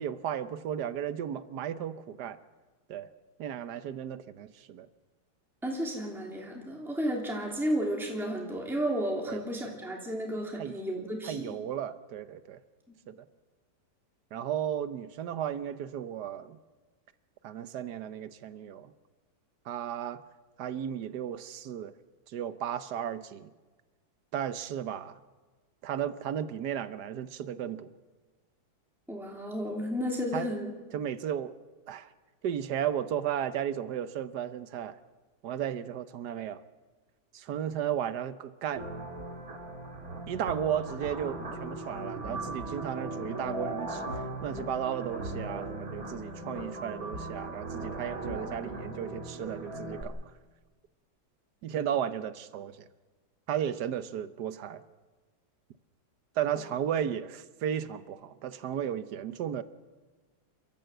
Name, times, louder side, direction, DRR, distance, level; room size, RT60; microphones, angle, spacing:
voice 1, 0.0-2.4 2.9-3.1 3.4-4.9 9.3-9.4 10.5-10.8 11.2-12.6 13.1-13.2 14.3-16.6 17.4-18.9 19.7-20.2 20.6-21.9 22.3-23.5 24.3-25.2 25.8-27.9 30.3-30.5 30.9-31.5 31.9-32.1 32.4-35.0 35.4-36.6 37.3-38.8 40.3-44.0 44.4-50.2 51.6-52.9 53.5-54.8 56.4-59.6, right 9 dB, 65° right, 14 dB, 1.3 m, -34 dB
voice 2, 5.6-11.6 29.1-30.7, equal, ahead, 0 dB, 2.9 m, -32 dB
sound 1, 38.8-50.0, right 2 dB, 50° right, 2.8 m, -38 dB
29.5 x 14.0 x 7.8 m, 1.3 s
omnidirectional pair, 2.1 m